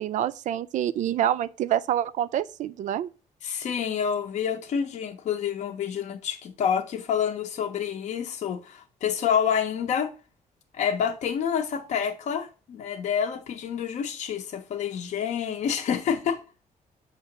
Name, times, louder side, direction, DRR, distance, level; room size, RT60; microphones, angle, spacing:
voice 1, 0.0-3.1, right 11 dB, 60° right, 0.4 m, -27 dB
voice 2, 3.4-10.1 10.7-16.4, left 8 dB, 55° left, 0.7 m, -28 dB
6.7 x 2.9 x 5.8 m
cardioid pair, 170°, 15 cm